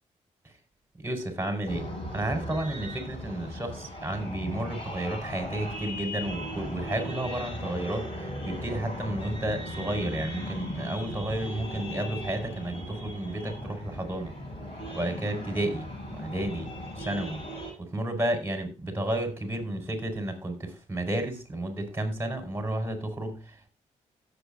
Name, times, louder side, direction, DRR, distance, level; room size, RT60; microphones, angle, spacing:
voice 1, 0.9-14.3 14.9-17.4 17.8-23.7, right 1 dB, 15° right, 7 dB, 4.5 m, -32 dB
sound 1, 1.7-17.7, equal, 40° left, 7.0 m, -38 dB
17.0 x 7.8 x 2.5 m, 0.31 s
supercardioid pair, 65°, 13 cm